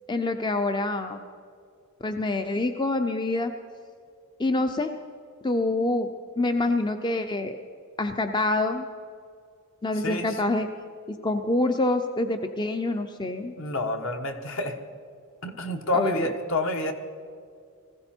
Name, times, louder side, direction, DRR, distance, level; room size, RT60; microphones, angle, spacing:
voice 1, 0.1-1.2 2.0-3.5 4.4-4.9 5.4-6.1 6.4-7.6 8.0-8.9 9.8-10.7 11.1-13.5 15.9-16.3, left 2 dB, 20° left, 7 dB, 0.5 m, -26 dB
voice 2, 13.6-14.7 15.4-16.9, left 2 dB, 60° left, 5 dB, 1.3 m, -28 dB
20.0 x 15.5 x 4.4 m, 2.3 s
head